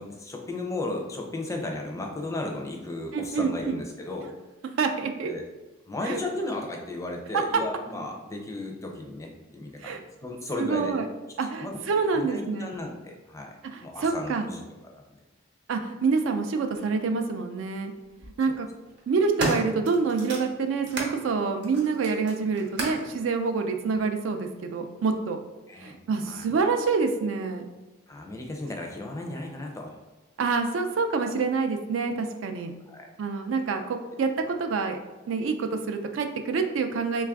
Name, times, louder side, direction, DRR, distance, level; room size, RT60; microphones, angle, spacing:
voice 1, 0.0-4.3 5.2-5.4 5.9-10.9 11.6-11.8 12.1-13.6 13.8-14.6 25.7-25.9 26.2-26.4 28.1-29.9 32.9-33.1, left 2 dB, 15° left, 1 dB, 0.4 m, -35 dB
voice 2, 3.1-3.7 4.8-5.3 6.0-6.2 9.8-10.0 10.6-11.1 11.4-12.7 13.7-14.5 15.7-17.9 18.4-18.7 19.1-25.4 25.8-27.7 30.4-32.7 33.2-35.0 35.3-37.3, right 4 dB, 75° right, 5 dB, 0.4 m, -27 dB
sound 1, 16.7-16.9 18.0-18.3 18.9-21.2 21.6-23.1 24.0-24.1, right 1 dB, 60° right, 0.8 m, -33 dB
3.2 x 2.3 x 3.4 m, 1.2 s
head